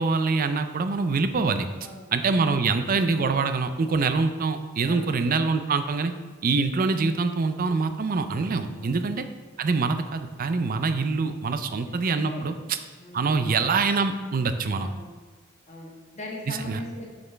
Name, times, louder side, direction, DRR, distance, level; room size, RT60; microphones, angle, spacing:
voice 1, 0.0-1.7 2.1-6.1 6.4-9.2 9.6-12.8 13.1-14.9 16.5-16.8, right 4 dB, 40° right, 9 dB, 0.4 m, -25 dB
voice 2, 11.5-12.5 13.0-13.7 14.8-15.2 15.7-17.1, left 1 dB, 35° left, -2 dB, 1.4 m, -41 dB
6.9 x 6.6 x 3.4 m, 1.4 s
head